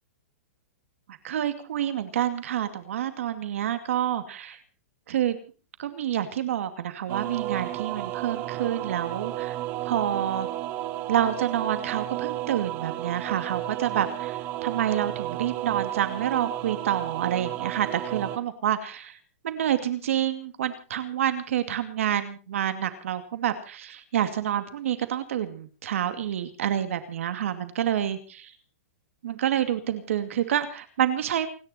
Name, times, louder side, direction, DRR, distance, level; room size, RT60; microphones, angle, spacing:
voice 1, 1.1-4.6 5.1-5.4 5.8-9.6 9.8-10.5 11.1-19.2 19.4-28.5 29.2-31.5, right 10 dB, 65° right, 10 dB, 2.3 m, -28 dB
sound 1, 7.1-18.4, right 15 dB, 25° right, 0.9 m, -32 dB
29.0 x 10.5 x 4.3 m, 0.37 s
supercardioid pair, 170°, 8 cm